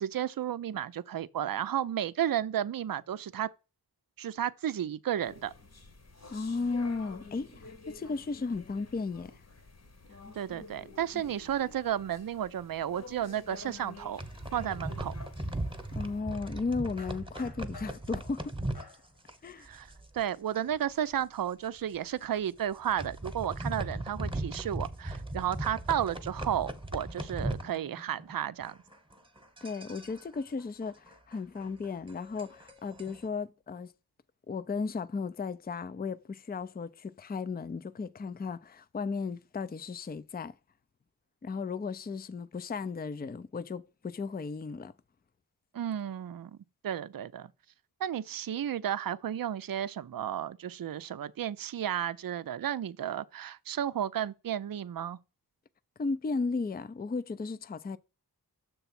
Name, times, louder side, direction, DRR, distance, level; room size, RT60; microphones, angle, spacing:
voice 1, 0.0-3.5 4.2-5.5 10.4-14.2 14.5-15.1 19.6-19.9 20.1-28.8 45.7-46.6 46.8-47.5 48.0-55.2, right 10 dB, 60° right, 0.5 m, -33 dB
sound 1, 5.2-16.2, left 4 dB, 40° left, 1.0 m, -50 dB
voice 2, 6.3-9.3 15.9-18.6 19.4-19.7 29.6-33.9 34.5-40.5 41.4-44.9 56.0-58.0, left 4 dB, 25° left, 0.4 m, -35 dB
sound 2, 14.0-20.3 20.5-20.8 21.1-21.2 21.8-21.9 22.6-28.3 28.6-33.3, right 1 dB, 15° right, 1.1 m, -38 dB
sound 3, 17.0-18.3 18.7-19.2 19.8-20.0, left 4 dB, 75° left, 1.4 m, -52 dB
6.9 x 3.5 x 5.7 m
wide cardioid pair, 60°, 39 cm